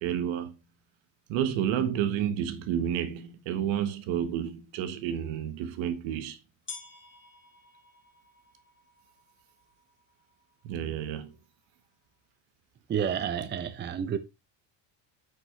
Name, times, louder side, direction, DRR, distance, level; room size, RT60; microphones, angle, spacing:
voice 1, 0.0-0.5 1.3-6.4 10.6-11.4, right 9 dB, 70° right, 1.7 m, -30 dB
sound 1, 2.7-2.8 3.6-3.7 5.4-5.5 6.7-12.3, left 5 dB, 25° left, 3.4 m, -51 dB
voice 2, 12.9-14.2, right 8 dB, 20° right, 0.7 m, -30 dB
8.9 x 6.3 x 3.4 m
cardioid pair, 125°, 49 cm